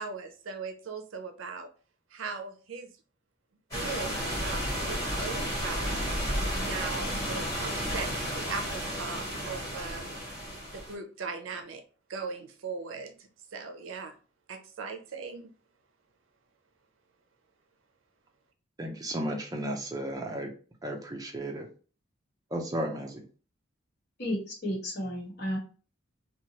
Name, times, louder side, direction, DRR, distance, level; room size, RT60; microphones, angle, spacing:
voice 1, 0.0-1.7 2.1-2.9 3.7-6.1 6.5-10.2 10.7-11.8 12.1-14.1 14.5-15.5, right 4 dB, 80° right, 6 dB, 0.5 m, -39 dB
sound 1, 3.7-10.9, equal, 15° left, 1.4 m, -32 dB
voice 2, 18.8-20.5 20.8-21.7 22.5-23.2, right 1 dB, 20° right, 2 dB, 0.5 m, -34 dB
voice 3, 24.2-25.6, equal, 50° left, -2 dB, 1.2 m, -32 dB
2.9 x 2.2 x 2.8 m, 0.38 s
head